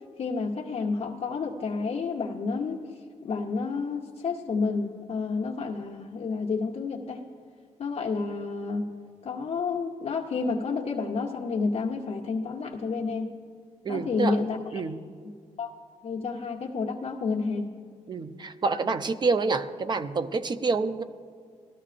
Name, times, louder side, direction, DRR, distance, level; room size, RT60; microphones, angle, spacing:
voice 1, 0.2-2.8 3.2-7.2 7.8-8.9 9.2-13.3 13.9-14.6 15.6-15.7 16.0-17.7, left 4 dB, 50° left, -2 dB, 0.8 m, -30 dB
voice 2, 13.8-14.4 14.7-15.0 18.1-21.0, right 4 dB, 35° right, 11 dB, 0.5 m, -27 dB
18.5 x 13.5 x 2.5 m, 2.1 s
cardioid pair, 115°, 13 cm